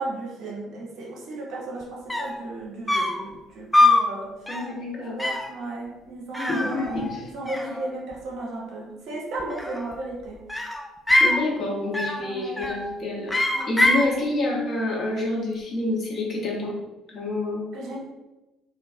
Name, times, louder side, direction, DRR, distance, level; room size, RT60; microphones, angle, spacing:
voice 1, 0.0-4.3 5.1-10.4 12.2-12.7 13.5-13.7 17.7-18.0, right 2 dB, 65° right, -3 dB, 0.7 m, -35 dB
sound 1, 1.8-1.9 2.1-2.4 2.9-3.3 3.7-4.1 4.5-4.8 5.2-5.5 6.3-7.2 7.5-8.2 9.4-10.0 10.5-11.4 11.9-12.3 12.6-12.9 13.3-14.1, left 2 dB, 10° left, 0.3 m, -23 dB
voice 2, 4.5-5.2 6.4-7.2 7.6-7.7 11.2-13.3 13.7-16.7 17.1-17.7, left 2 dB, 50° left, -3 dB, 0.8 m, -28 dB
2.2 x 2.2 x 2.6 m, 1.1 s
hypercardioid pair, 55°, 0 cm